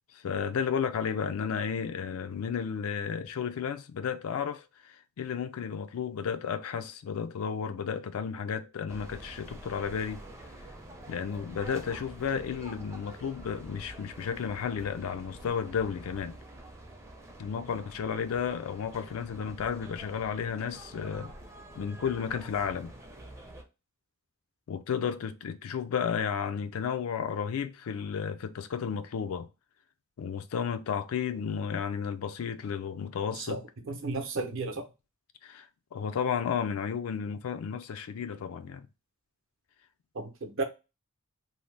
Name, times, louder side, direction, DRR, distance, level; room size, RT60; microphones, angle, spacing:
voice 1, 0.1-10.2 11.1-16.3 17.4-21.3 21.7-22.9 24.7-29.5 30.2-33.6 35.4-38.9, left 7 dB, 75° left, 0.4 m, -33 dB
sound 1, 8.9-23.6, right 1 dB, 15° right, 0.4 m, -47 dB
voice 2, 33.4-34.8 40.1-40.6, right 3 dB, 60° right, 0.6 m, -34 dB
2.7 x 2.1 x 3.2 m
head